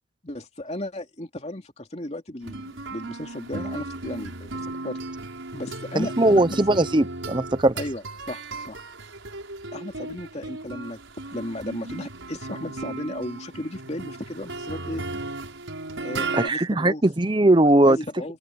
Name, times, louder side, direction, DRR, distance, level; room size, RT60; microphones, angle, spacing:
voice 1, 0.2-5.0 5.5-6.8 7.7-8.8 9.7-11.0 11.3-15.0 16.0-17.0 17.8-18.4, left 1 dB, 35° left, 2.7 m, -35 dB
sound 1, 2.4-16.5, right 2 dB, 90° right, 6.6 m, -35 dB
voice 2, 6.0-7.7 16.3-18.0, right 1 dB, 25° right, 0.7 m, -19 dB
open air
head